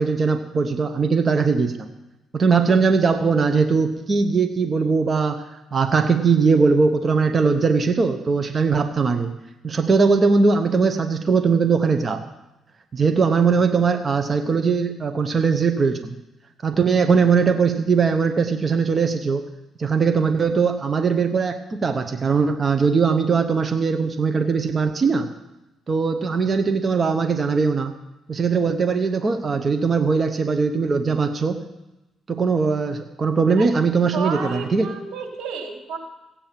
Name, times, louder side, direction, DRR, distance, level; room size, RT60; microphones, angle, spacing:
voice 1, 0.0-1.9 2.3-9.3 9.6-12.2 12.9-16.1 16.6-19.5 19.8-25.3 25.9-27.9 28.3-31.6 32.3-34.9, right 5 dB, 40° right, 7 dB, 0.9 m, -20 dB
voice 2, 34.1-36.0, right 5 dB, 75° right, 1 dB, 3.3 m, -31 dB
15.5 x 8.4 x 5.8 m, 0.99 s
cardioid pair, 90°, 0 cm